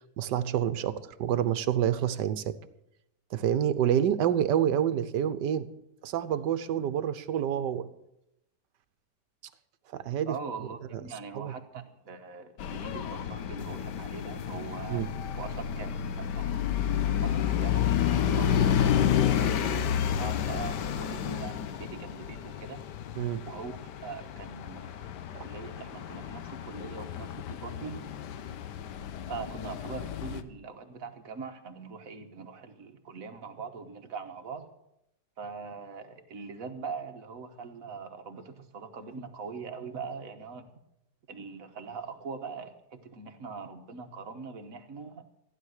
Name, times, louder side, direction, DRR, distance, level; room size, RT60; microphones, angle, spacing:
voice 1, 0.2-2.6 3.3-5.7 6.0-7.9 9.9-10.3 11.3-11.5 14.9-15.1 23.1-23.5 25.3-25.4, right 10 dB, 85° right, 13 dB, 1.4 m, -28 dB
voice 2, 10.3-15.0 15.3-17.9 18.4-22.8 23.5-25.1 25.3-28.0 29.3-34.7 35.4-40.7 41.3-45.2, right 5 dB, 55° right, 5 dB, 1.6 m, -42 dB
sound 1, 12.6-30.4, left 9 dB, 80° left, 1.4 m, -30 dB
15.0 x 10.5 x 6.5 m, 0.84 s
omnidirectional pair, 1.8 m